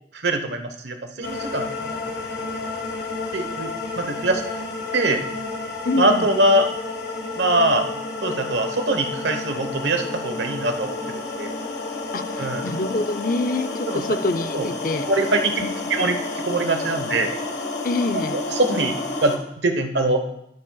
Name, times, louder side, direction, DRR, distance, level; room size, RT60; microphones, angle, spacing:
voice 1, 0.1-2.0 3.3-4.4 4.9-5.2 6.0-6.7 7.4-7.9 8.2-11.6 12.4-12.7 13.9-14.2 14.5-14.6 15.0-15.6 15.9-17.4 18.3-18.9 19.2-20.2, right 2 dB, 80° right, 6 dB, 1.1 m, -23 dB
sound 1, 1.2-19.4, left 3 dB, 70° left, 1.4 m, -30 dB
voice 2, 5.8-6.2 12.1-15.0 15.6-15.7 17.8-18.4, left 2 dB, 50° left, 11 dB, 0.6 m, -26 dB
20.0 x 7.5 x 2.3 m, 0.78 s
head